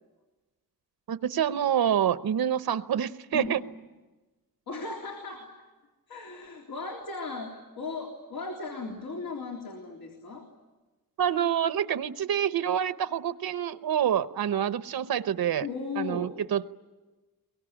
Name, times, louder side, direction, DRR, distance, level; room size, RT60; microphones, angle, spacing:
voice 1, 1.1-3.6 11.2-15.7 16.0-16.8, right 9 dB, 85° right, 13 dB, 0.9 m, -27 dB
voice 2, 4.7-5.5 6.1-10.5 15.6-16.4, left 4 dB, 70° left, 1 dB, 3.6 m, -37 dB
23.5 x 23.0 x 10.0 m, 1.2 s
wide cardioid pair, 140°, 35 cm